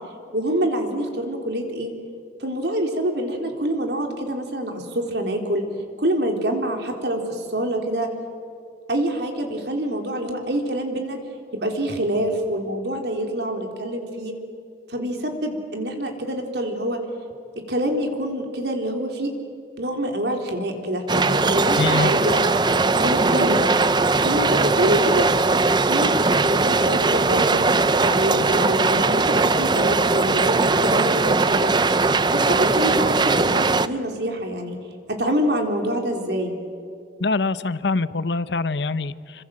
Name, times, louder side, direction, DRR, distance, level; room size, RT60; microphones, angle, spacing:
voice 1, 0.3-1.9 2.4-5.7 6.0-8.1 8.9-11.2 11.5-14.3 14.9-17.0 17.6-19.3 19.8-22.6 23.0-23.6 24.2-25.3 25.9-26.2 26.4-27.6 28.0-31.7 32.3-34.8 35.1-36.5, right 1 dB, 70° right, 3 dB, 3.9 m, -26 dB
sound 1, 21.1-33.9, right 3 dB, 25° right, 0.6 m, -19 dB
voice 2, 21.8-22.1 37.2-39.4, left 3 dB, 80° left, 15 dB, 0.9 m, -24 dB
28.0 x 25.0 x 7.7 m, 2.5 s
head